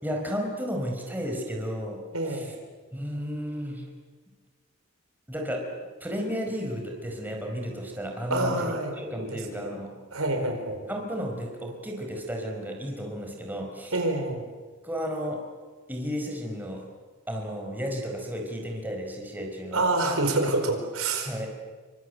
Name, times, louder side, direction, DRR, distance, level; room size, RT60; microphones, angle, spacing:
voice 1, 0.0-2.5 2.9-3.9 5.3-5.7 6.0-10.0 10.9-13.9 14.8-15.4 15.9-16.9 17.3-19.9 21.2-21.5, equal, 10° right, 1 dB, 4.8 m, -33 dB
voice 2, 2.1-2.6 8.3-9.7 10.1-10.8 13.9-14.4 19.7-21.5, right 2 dB, 80° right, 4 dB, 5.0 m, -27 dB
28.5 x 24.5 x 8.1 m, 1.4 s
head